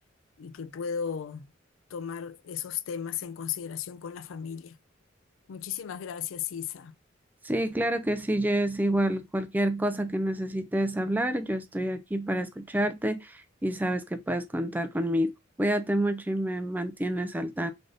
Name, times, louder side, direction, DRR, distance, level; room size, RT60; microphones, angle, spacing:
voice 1, 0.4-1.5 1.9-4.8 5.5-6.9, left 8 dB, 80° left, 0.4 m, -35 dB
voice 2, 7.4-17.7, right 1 dB, 10° right, 0.4 m, -28 dB
3.4 x 2.6 x 3.6 m
head